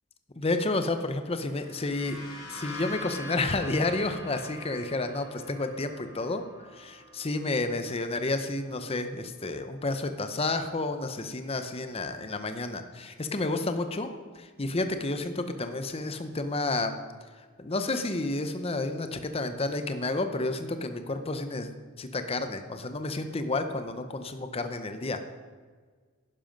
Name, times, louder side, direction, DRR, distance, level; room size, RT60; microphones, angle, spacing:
voice 1, 0.4-14.1 14.3-16.9 17.6-21.7 22.0-25.2, left 2 dB, 30° left, 8 dB, 0.7 m, -31 dB
sound 1, 1.4-9.0, left 1 dB, 75° left, 3.0 m, -45 dB
11.5 x 10.0 x 5.2 m, 1.5 s
head